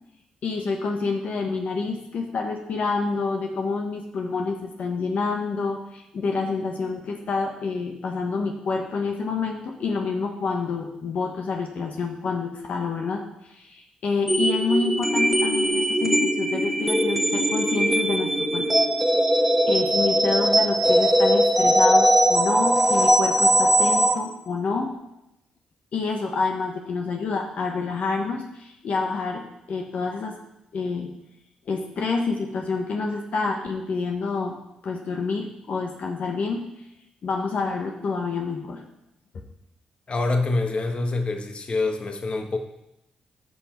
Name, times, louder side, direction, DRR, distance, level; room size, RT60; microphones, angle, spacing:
voice 1, 0.4-18.6 19.7-24.9 25.9-30.3 30.7-31.1 31.7-34.6 34.8-36.6 37.2-38.8, left 4 dB, 65° left, 2 dB, 1.3 m, -28 dB
sound 1, 14.3-24.2, right 1 dB, 5° right, 1.5 m, -20 dB
voice 2, 40.1-42.6, left 3 dB, 45° left, 5 dB, 1.3 m, -25 dB
12.5 x 5.8 x 4.5 m, 0.87 s
supercardioid pair, 55°, 3 cm